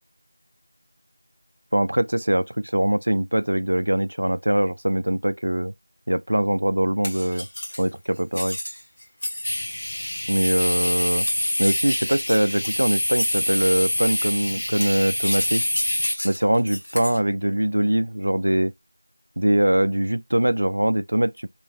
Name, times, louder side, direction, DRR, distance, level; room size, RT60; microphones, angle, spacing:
voice 1, 1.7-5.7 6.1-7.5 7.8-8.6 10.3-11.3 11.6-15.6 16.2-18.7 19.4-21.5, right 1 dB, 55° right, 0.3 m, -22 dB
sound 1, 7.0-9.7 11.3-13.6 14.8-17.2, left 1 dB, 35° left, 1.1 m, -33 dB
sound 2, 9.4-16.2, left 1 dB, 55° left, 0.8 m, -26 dB
3.2 x 2.9 x 2.5 m
figure-of-eight pair, 180°, 0 cm